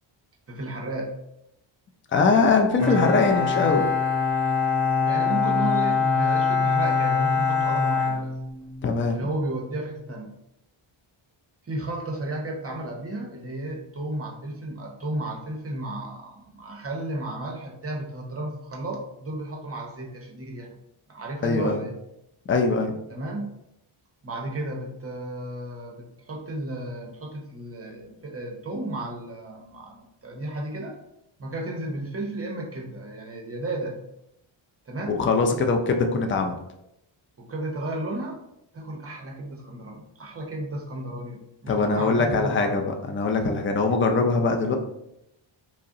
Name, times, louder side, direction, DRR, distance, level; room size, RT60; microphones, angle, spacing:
voice 1, 0.5-1.1 5.1-8.3 9.1-10.3 11.6-20.7 21.1-22.0 23.1-23.5 24.2-31.0 31.4-34.0 34.9-35.2 37.4-38.4 38.7-42.8, right 1 dB, 30° right, 0 dB, 0.6 m, -33 dB
voice 2, 2.1-3.9 8.8-9.2 21.4-21.8 22.5-22.9 35.1-36.5 41.7-44.7, left 4 dB, 30° left, 4 dB, 0.3 m, -22 dB
Bowed string instrument, 2.8-8.9, left 5 dB, 5° left, 1.5 m, -23 dB
4.8 x 2.0 x 2.7 m, 0.82 s
wide cardioid pair, 145°, 50 cm